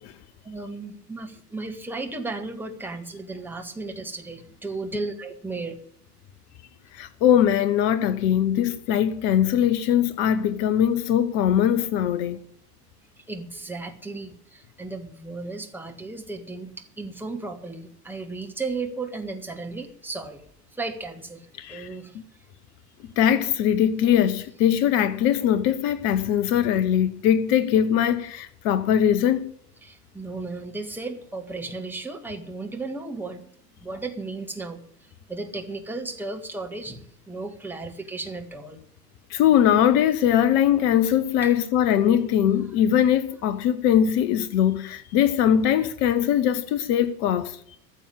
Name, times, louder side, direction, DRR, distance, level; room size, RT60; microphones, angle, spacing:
voice 1, 0.4-5.8 13.2-20.4 20.7-22.1 29.8-33.5 33.8-38.8 41.4-41.5, right 3 dB, 5° right, 1.7 m, -35 dB
voice 2, 6.9-12.4 21.6-21.9 23.2-29.5 39.3-47.6, left 10 dB, 25° left, 0.6 m, -21 dB
14.5 x 7.0 x 9.7 m
figure-of-eight pair, 90°, 49 cm